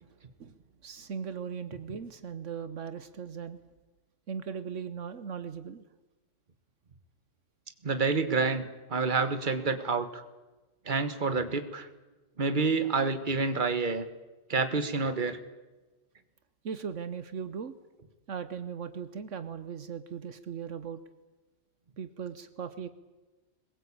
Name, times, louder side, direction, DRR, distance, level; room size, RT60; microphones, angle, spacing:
voice 1, 0.8-3.6 4.3-5.8 16.6-17.7 18.3-21.0 22.0-22.9, right 7 dB, 75° right, 12 dB, 1.4 m, -38 dB
voice 2, 7.8-10.2 10.8-11.9 12.4-14.1 14.5-15.4, right 4 dB, 40° right, 10 dB, 1.6 m, -28 dB
22.0 x 21.0 x 8.6 m, 1.2 s
omnidirectional pair, 1.3 m